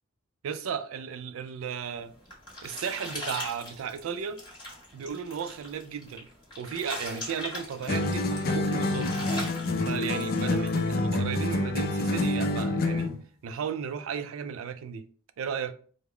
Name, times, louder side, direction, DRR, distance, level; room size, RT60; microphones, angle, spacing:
voice 1, 0.4-2.1 2.6-4.4 4.9-6.3 6.6-9.2 9.9-13.1 13.4-15.0 15.4-15.7, right 7 dB, 80° right, 0.4 m, -35 dB
sound 1, 1.9-10.8, left 1 dB, 20° left, 1.3 m, -40 dB
sound 2, 7.9-13.2, left 2 dB, 45° left, 0.4 m, -27 dB
3.5 x 2.0 x 3.2 m
head